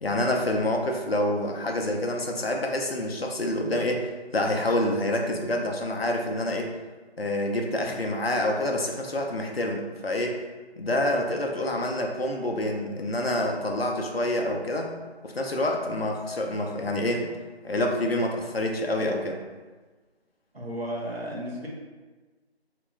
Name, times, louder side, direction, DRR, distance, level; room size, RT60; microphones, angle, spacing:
voice 1, 0.0-4.1 4.3-6.7 7.2-10.4 10.8-14.9 15.2-17.3 17.6-19.4, left 1 dB, 65° left, 1 dB, 0.6 m, -27 dB
voice 2, 20.5-21.7, equal, 65° right, -4 dB, 1.0 m, -33 dB
2.9 x 2.5 x 3.2 m, 1.3 s
figure-of-eight pair, 180°, 33 cm